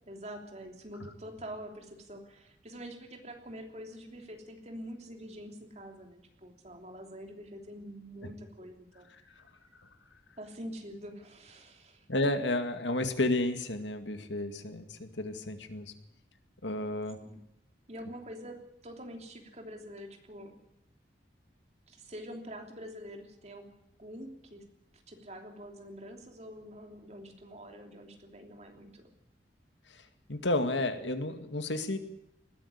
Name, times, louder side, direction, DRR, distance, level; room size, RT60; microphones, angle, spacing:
voice 1, 0.0-9.1 10.4-12.1 17.2-17.5 17.9-20.6 21.9-23.7 24.0-24.7 25.1-29.1, equal, 35° right, 4 dB, 3.2 m, -46 dB
voice 2, 12.1-15.9 16.6-17.2 29.9-32.0, left 2 dB, 80° left, 8 dB, 2.2 m, -32 dB
20.0 x 13.0 x 9.8 m, 0.84 s
head